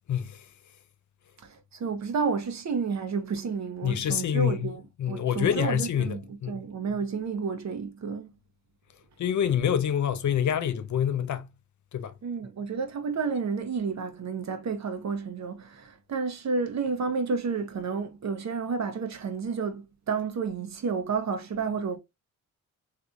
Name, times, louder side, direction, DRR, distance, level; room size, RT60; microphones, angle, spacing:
voice 1, 0.1-0.4 3.8-6.6 9.2-11.5 11.9-12.1, left 9 dB, 55° left, 0.5 m, -27 dB
voice 2, 1.4-6.2 6.5-8.3 12.2-22.0, right 5 dB, 50° right, 0.8 m, -31 dB
3.3 x 2.8 x 2.4 m
cardioid pair, 70°, 35 cm